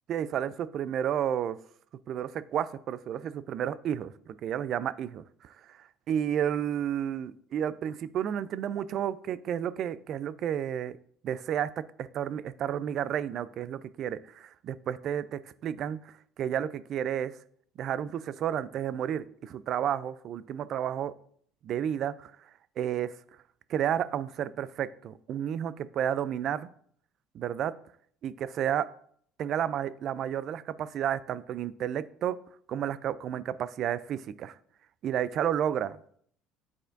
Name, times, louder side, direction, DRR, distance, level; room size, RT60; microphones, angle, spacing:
voice 1, 0.1-1.6 2.1-11.0 11.2-17.3 17.8-21.1 21.6-22.3 22.8-23.1 23.7-26.7 27.3-27.7 28.2-28.9 29.4-32.4 32.7-34.6 35.0-36.0, right 9 dB, 55° right, 16 dB, 0.4 m, -31 dB
9.9 x 4.2 x 2.6 m, 0.62 s
supercardioid pair, 95°, 0 cm